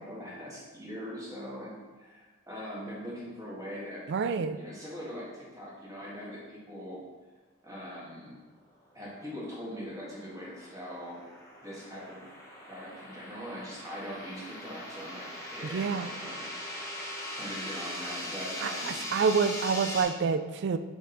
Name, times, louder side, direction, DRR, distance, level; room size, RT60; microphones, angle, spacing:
voice 1, 0.0-4.1 4.5-7.0 7.6-8.4 8.9-11.2 11.6-12.3 12.7-17.0 17.4-19.1, equal, 15° right, -6 dB, 1.6 m, -42 dB
voice 2, 4.1-4.6 15.7-16.1 18.6-20.8, right 5 dB, 50° right, 10 dB, 0.3 m, -28 dB
sound 1, 9.6-20.0, left 1 dB, 15° left, 0.9 m, -40 dB
6.1 x 5.0 x 3.9 m, 1.3 s
head